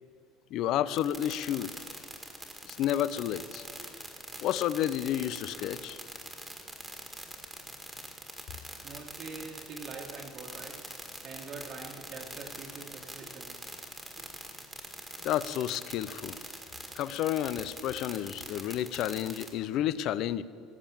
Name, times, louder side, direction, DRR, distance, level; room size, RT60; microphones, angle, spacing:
voice 1, 0.5-1.7 2.6-3.6 4.4-6.0 15.2-16.4 16.9-20.4, left 11 dB, 55° left, 17 dB, 0.4 m, -31 dB
sound 1, 1.0-19.5, right 2 dB, 5° right, 1.7 m, -43 dB
voice 2, 8.8-10.9 11.2-13.7 14.2-14.3, right 4 dB, 45° right, -1 dB, 1.6 m, -44 dB
17.5 x 7.3 x 7.2 m, 2.4 s
cardioid pair, 145°, 0 cm